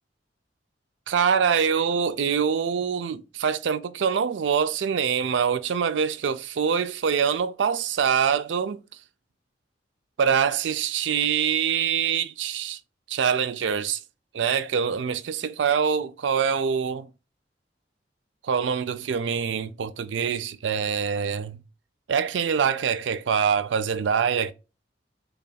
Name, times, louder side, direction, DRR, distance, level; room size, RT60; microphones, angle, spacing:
voice 1, 1.1-8.8 10.2-12.8 13.1-14.0 14.3-17.1 18.4-21.6 22.1-24.5, right 7 dB, 90° right, 0.4 m, -24 dB
3.4 x 2.3 x 4.0 m
head